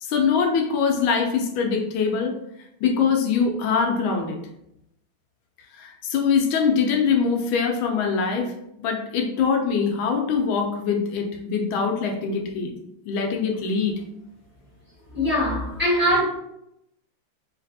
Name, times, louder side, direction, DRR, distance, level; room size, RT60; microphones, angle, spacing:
voice 1, 0.0-2.3 2.8-4.4 5.7-12.7 13.1-14.0, left 5 dB, 80° left, 3 dB, 1.3 m, -23 dB
voice 2, 15.1-16.2, equal, 5° right, -8 dB, 0.9 m, -21 dB
3.2 x 2.9 x 2.7 m, 0.80 s
omnidirectional pair, 2.3 m